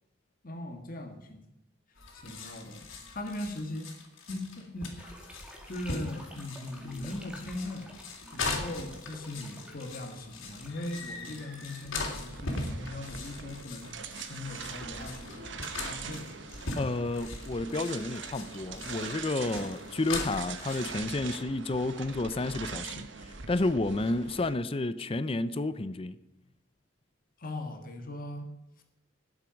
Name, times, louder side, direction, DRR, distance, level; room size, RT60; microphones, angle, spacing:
voice 1, 0.4-1.5 2.1-3.9 4.3-5.1 5.7-7.9 8.3-13.9 14.3-16.3 16.6-16.8 27.4-28.8, left 1 dB, 45° left, 1.6 m, -40 dB
sound 1, 2.0-21.0, left 3 dB, 75° left, 3.3 m, -40 dB
sound 2, 4.8-12.8, equal, 5° right, 2.2 m, -53 dB
sound 3, 12.3-24.5, right 5 dB, 60° right, 1.1 m, -42 dB
voice 2, 16.8-26.2, left 2 dB, 30° left, 0.5 m, -31 dB
19.5 x 7.7 x 5.2 m
head